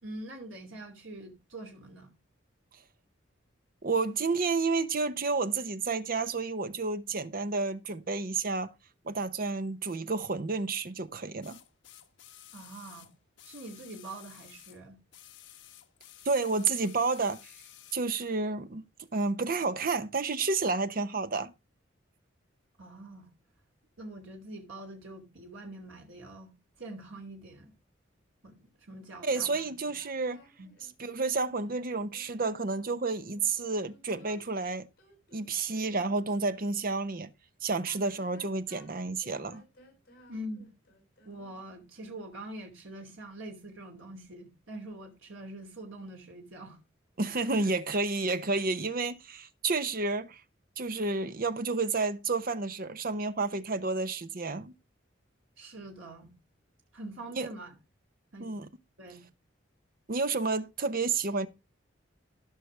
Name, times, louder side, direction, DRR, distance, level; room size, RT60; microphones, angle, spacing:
voice 1, 0.0-2.1 12.5-13.1 13.4-15.0 22.8-23.3 24.0-27.7 28.4-29.9 30.6-30.7 40.3-40.7 41.2-46.8 47.3-47.4 55.6-56.3 56.9-57.7 58.3-58.5 59.0-59.3, right 1 dB, 90° right, 2.9 m, -44 dB
voice 2, 3.8-8.7 9.0-11.6 16.2-17.5 17.9-18.8 19.1-21.5 29.2-30.4 31.0-34.9 35.3-37.3 37.6-39.6 47.2-50.4 50.8-54.7 57.4-57.5 58.4-58.7 60.1-61.5, right 3 dB, 45° right, 0.8 m, -30 dB
sound 1, 9.8-10.0 11.4-14.8 15.1-18.1 19.0-19.1, left 12 dB, 70° left, 1.2 m, -53 dB
sound 2, 29.5-37.0 37.7-41.7, equal, 50° left, 6.5 m, -58 dB
16.0 x 5.9 x 3.3 m
head